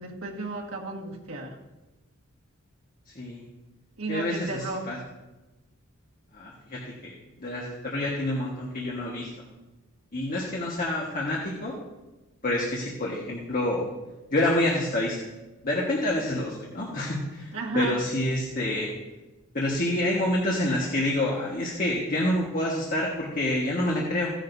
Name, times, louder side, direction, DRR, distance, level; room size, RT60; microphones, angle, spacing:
voice 1, 0.0-1.6 4.0-5.0 17.5-18.0, right 3 dB, 75° right, -1 dB, 1.7 m, -33 dB
voice 2, 3.1-3.4 4.1-5.0 6.3-9.3 10.1-11.7 12.4-13.8 14.3-15.2 15.6-18.9 19.5-24.3, left 1 dB, 45° left, -3 dB, 1.5 m, -28 dB
15.5 x 10.5 x 2.7 m, 1.1 s
head